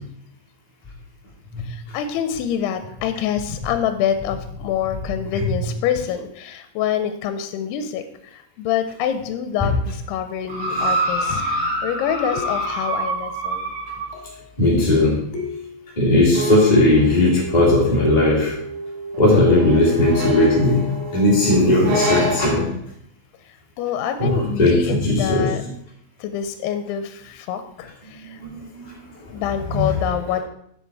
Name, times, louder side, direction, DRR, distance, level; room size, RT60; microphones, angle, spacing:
voice 1, 1.6-13.7 23.8-25.6 26.2-28.4 29.3-30.4, left 9 dB, 80° left, 9 dB, 2.5 m, -26 dB
sound 1, 10.5-14.1 14.9-15.0, right 1 dB, 45° right, 1.2 m, -25 dB
sound 2, 12.3-12.9 14.1-14.5 15.3-15.9 16.7-17.2 18.1-18.5 19.2-20.8 21.9-22.3 23.8-24.0, left 4 dB, 60° left, 2.5 m, -34 dB
voice 2, 14.6-15.2 16.0-18.5 19.2-20.9 21.1-22.7 24.2-25.5 28.4-28.6 29.7-29.8, left 2 dB, 25° left, -6 dB, 1.0 m, -17 dB
sound 3, 16.3-22.7, equal, 80° right, 3.4 m, -28 dB
7.5 x 6.6 x 4.6 m, 0.72 s
omnidirectional pair, 4.8 m